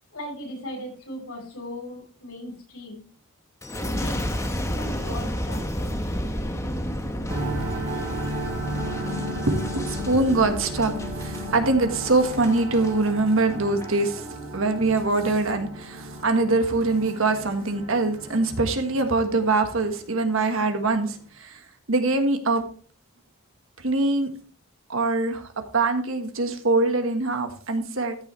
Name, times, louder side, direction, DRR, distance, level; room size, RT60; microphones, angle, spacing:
voice 1, 0.1-3.0 3.9-4.3 4.7-6.0, equal, 80° left, 0 dB, 5.0 m, -38 dB
Boom, 3.6-12.9 13.5-13.9, equal, 15° left, 1.1 m, -31 dB
sound 1, 7.3-20.0, equal, 25° right, 4.2 m, -34 dB
voice 2, 9.0-14.3 14.5-22.6 23.8-24.3 24.9-28.2, right 3 dB, 65° right, 6 dB, 1.4 m, -23 dB
13.5 x 7.0 x 3.2 m, 0.43 s
head